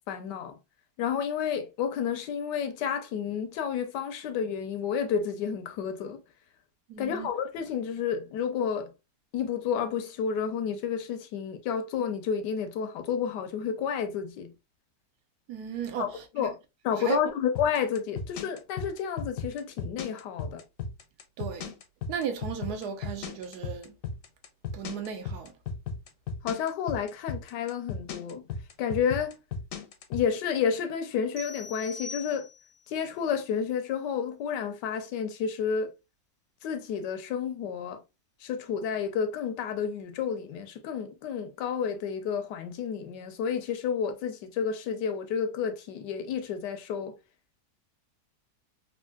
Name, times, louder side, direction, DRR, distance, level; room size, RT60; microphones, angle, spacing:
voice 1, 0.1-0.6 1.0-6.2 7.0-8.9 9.3-14.5 16.0-16.6 16.8-20.6 26.4-28.5 28.8-29.4 30.1-32.5 32.9-35.9 36.6-38.0 38.4-47.1, left 7 dB, 90° left, 1.3 m, -30 dB
voice 2, 6.9-7.3 15.5-16.5 17.0-17.2 21.4-21.7 22.1-23.9 24.7-25.5, right 7 dB, 75° right, 1.1 m, -35 dB
sound 1, 17.6-30.3, left 5 dB, 65° left, 0.8 m, -35 dB
sound 2, 31.4-32.9, left 3 dB, 50° right, 0.9 m, -42 dB
3.5 x 2.5 x 2.3 m
omnidirectional pair, 1.8 m